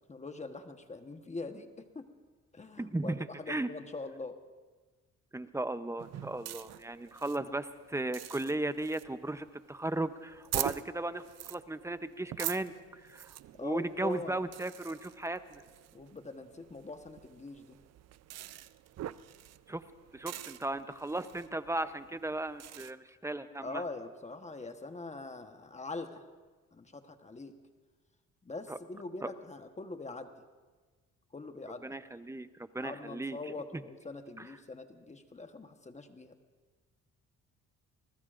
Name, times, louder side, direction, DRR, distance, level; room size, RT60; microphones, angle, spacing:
voice 1, 0.1-2.1 2.5-4.3 13.6-14.4 15.9-17.8 23.6-26.2 26.7-27.5 28.4-30.3 31.3-31.9 32.8-36.3, left 3 dB, 25° left, 7 dB, 1.2 m, -43 dB
voice 2, 2.8-3.7 5.3-13.3 13.6-15.6 19.7-19.8 20.1-23.8 28.7-28.8 29.2-29.3 31.8-32.5 32.7-33.8 34.4-34.5, right 2 dB, 10° right, 11 dB, 0.7 m, -36 dB
sound 1, 6.0-22.9, right 12 dB, 60° right, 0.5 m, -44 dB
28.0 x 20.0 x 2.6 m, 1.4 s
cardioid pair, 90°, 30 cm